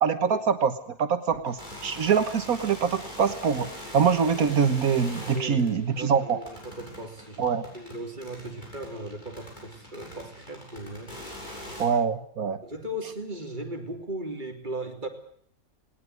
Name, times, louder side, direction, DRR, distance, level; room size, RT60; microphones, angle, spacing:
voice 1, 0.0-6.4 7.4-7.7 11.8-12.6, right 6 dB, 85° right, 9 dB, 1.7 m, -24 dB
sound 1, 1.5-11.9, left 1 dB, 30° left, 7.6 m, -43 dB
voice 2, 5.3-7.4 7.7-11.2 12.6-15.1, right 1 dB, 30° right, 3 dB, 3.4 m, -37 dB
19.5 x 19.0 x 9.4 m, 0.63 s
omnidirectional pair, 1.5 m